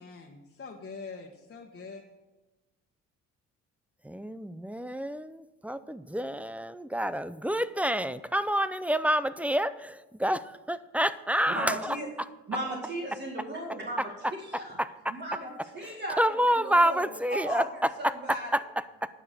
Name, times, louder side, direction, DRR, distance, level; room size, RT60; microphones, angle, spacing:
voice 1, 0.0-2.0, left 4 dB, 35° left, 0 dB, 1.4 m, -44 dB
voice 2, 4.0-12.3 14.0-15.2 15.8-19.1, equal, 5° right, 15 dB, 0.5 m, -29 dB
voice 3, 11.5-12.1 12.5-14.1 14.4-14.7 15.1-16.2 16.6-17.0 17.3-17.7 18.0-18.5, right 1 dB, 35° right, -2 dB, 2.2 m, -35 dB
9.9 x 6.8 x 6.5 m, 1.1 s
cardioid pair, 90°, 30 cm